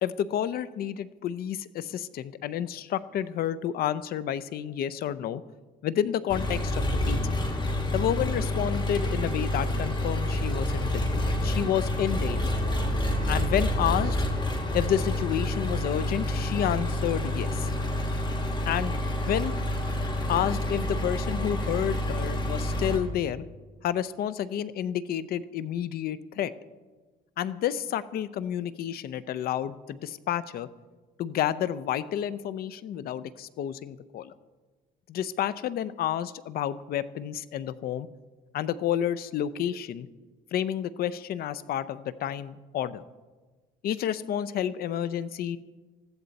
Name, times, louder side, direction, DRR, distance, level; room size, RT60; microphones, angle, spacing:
voice 1, 0.0-5.4 5.8-7.3 7.9-12.4 13.3-14.2 14.7-17.7 18.7-18.9 19.3-19.5 20.3-23.4 23.8-26.5 27.4-30.7 31.2-34.3 35.1-38.1 38.5-40.1 40.5-43.0 43.8-45.6, left 10 dB, 65° left, 16 dB, 0.7 m, -30 dB
Engine, 6.3-23.0, left 1 dB, 25° left, 2.5 m, -28 dB
20.0 x 14.5 x 4.1 m, 1.3 s
cardioid pair, 110°, 17 cm